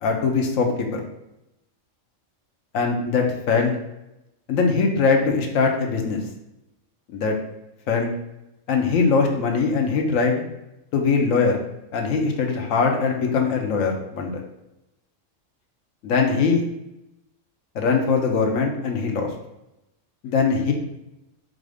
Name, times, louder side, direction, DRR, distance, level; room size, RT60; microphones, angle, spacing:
voice 1, 0.0-1.0 2.7-3.7 4.5-6.2 7.1-7.4 7.9-8.1 8.7-10.4 10.9-11.6 11.9-14.4 16.0-16.6 17.7-19.3 20.2-20.7, left 4 dB, 90° left, 2 dB, 1.2 m, -21 dB
4.2 x 2.6 x 4.8 m, 0.90 s
omnidirectional pair, 1.3 m